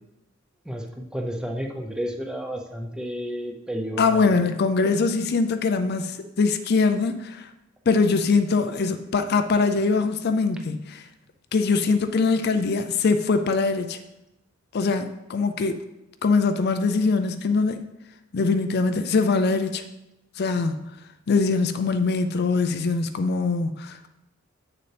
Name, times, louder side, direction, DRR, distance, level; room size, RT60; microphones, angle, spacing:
voice 1, 0.7-4.4, equal, 5° right, 2 dB, 0.7 m, -31 dB
voice 2, 4.0-7.5 7.9-11.1 11.5-14.0 14.7-15.8 16.2-17.8 18.3-19.8 20.4-20.9 21.3-24.1, left 4 dB, 55° left, 8 dB, 0.4 m, -22 dB
7.9 x 6.8 x 3.3 m, 0.92 s
head